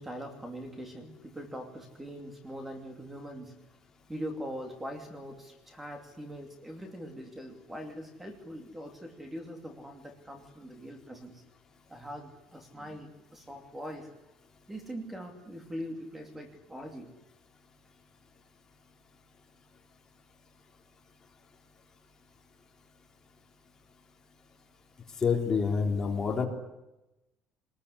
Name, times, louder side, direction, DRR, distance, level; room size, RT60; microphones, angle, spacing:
voice 1, 0.0-3.5 4.1-11.4 11.9-14.1 14.7-17.1, equal, 10° right, 4 dB, 2.8 m, -42 dB
voice 2, 25.2-26.5, left 5 dB, 20° left, 2 dB, 3.3 m, -27 dB
24.5 x 20.5 x 9.9 m, 0.96 s
cardioid pair, 170°, 2 cm